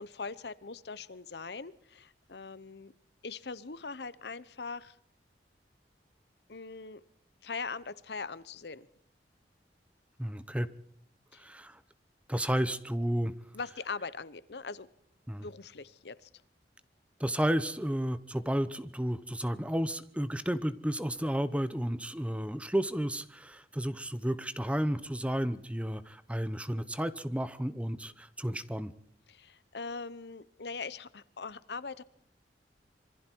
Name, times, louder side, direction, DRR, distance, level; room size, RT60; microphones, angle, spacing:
voice 1, 0.0-2.9 3.2-5.0 6.5-7.0 7.4-8.9 11.3-11.5 13.5-14.9 15.4-16.3 29.3-32.0, left 4 dB, 70° left, 17 dB, 0.9 m, -41 dB
voice 2, 10.2-10.7 11.4-11.8 12.3-13.3 15.3-15.4 17.2-28.9, equal, 5° right, 13 dB, 0.9 m, -32 dB
26.5 x 23.0 x 4.6 m, 0.67 s
head